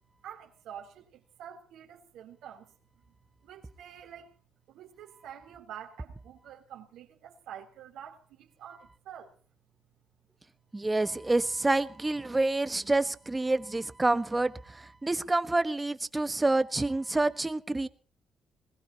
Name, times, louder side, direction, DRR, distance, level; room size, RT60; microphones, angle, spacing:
voice 1, 0.2-2.7 3.4-4.3 4.7-9.3, right 9 dB, 80° right, 1 dB, 3.5 m, -47 dB
voice 2, 10.7-17.9, right 2 dB, 20° right, 12 dB, 1.4 m, -28 dB
21.0 x 20.0 x 3.0 m, 0.40 s
supercardioid pair, 70°, 0 cm